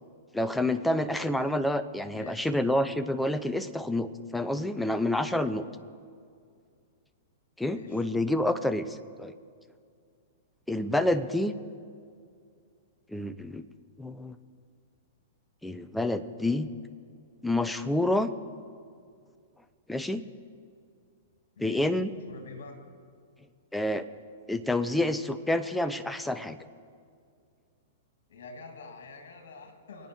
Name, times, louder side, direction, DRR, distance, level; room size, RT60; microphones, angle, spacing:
voice 1, 0.3-5.6 7.6-9.3 10.7-11.5 13.1-13.6 14.0-14.4 15.6-16.7 17.4-18.3 19.9-20.2 21.6-22.1 23.7-24.0 24.5-26.6, left 1 dB, 5° left, 11 dB, 0.7 m, -28 dB
voice 2, 2.1-2.5 7.6-8.0 21.6-21.9 22.3-22.8 28.3-30.1, left 3 dB, 65° left, 5 dB, 2.5 m, -46 dB
24.5 x 9.1 x 4.7 m, 2.2 s
figure-of-eight pair, 110°, 0 cm